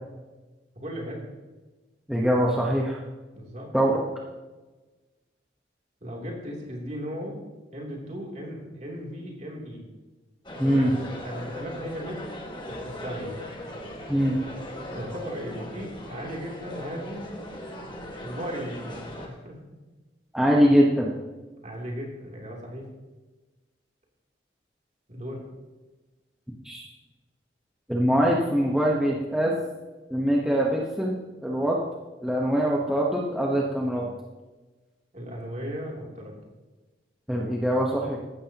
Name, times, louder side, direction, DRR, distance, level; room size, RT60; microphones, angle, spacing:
voice 1, 0.7-1.2 3.3-3.7 6.0-7.4 7.7-9.9 10.6-12.2 12.7-13.3 14.9-17.3 18.2-19.6 21.6-22.8 25.1-25.4 35.1-36.4, equal, 40° right, -2 dB, 3.1 m, -36 dB
voice 2, 2.1-3.0 3.7-4.0 10.6-10.9 14.1-14.4 20.3-21.1 26.6-26.8 27.9-29.5 30.1-31.8 32.2-34.1 37.3-38.2, equal, 5° right, -4 dB, 1.1 m, -23 dB
sound 1, 10.4-19.3, left 1 dB, 25° left, 1.7 m, -39 dB
15.5 x 12.0 x 2.9 m, 1.2 s
head